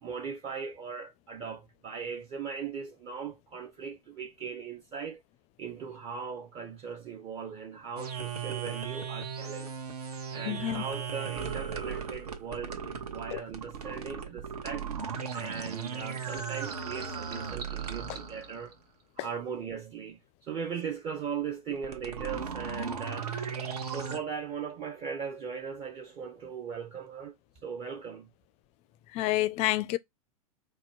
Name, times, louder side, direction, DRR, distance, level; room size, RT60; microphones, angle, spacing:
voice 1, 0.0-5.2 5.6-9.7 10.3-14.9 15.3-18.7 19.2-23.3 23.8-27.3 27.6-28.3, right 6 dB, 30° right, 0.6 m, -39 dB
sound 1, 8.0-18.7 21.7-24.2, right 6 dB, 85° right, 1.0 m, -37 dB
voice 2, 10.5-10.8 13.3-13.4 19.2-19.3 29.1-30.0, left 16 dB, 35° left, 0.4 m, -28 dB
4.3 x 2.2 x 4.4 m
hypercardioid pair, 110°, 19 cm